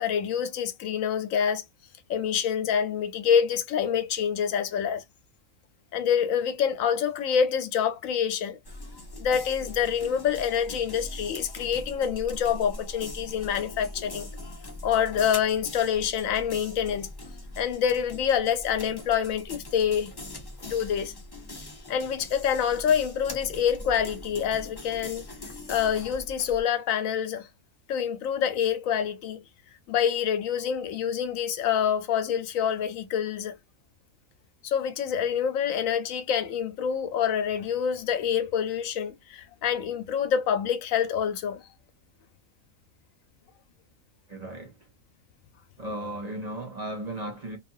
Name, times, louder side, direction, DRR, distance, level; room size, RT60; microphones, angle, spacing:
voice 1, 0.0-1.6 2.1-5.0 5.9-8.6 9.2-14.3 14.8-17.1 17.6-20.1 20.6-21.1 21.9-25.2 25.7-27.5 27.9-29.4 29.9-33.6 34.6-41.6, left 8 dB, 85° left, 1.0 m, -26 dB
sound 1, 8.6-26.6, left 1 dB, 25° left, 0.5 m, -41 dB
voice 2, 44.3-44.8 45.8-47.6, right 1 dB, 40° right, 0.6 m, -35 dB
2.8 x 2.3 x 2.5 m
omnidirectional pair, 1.4 m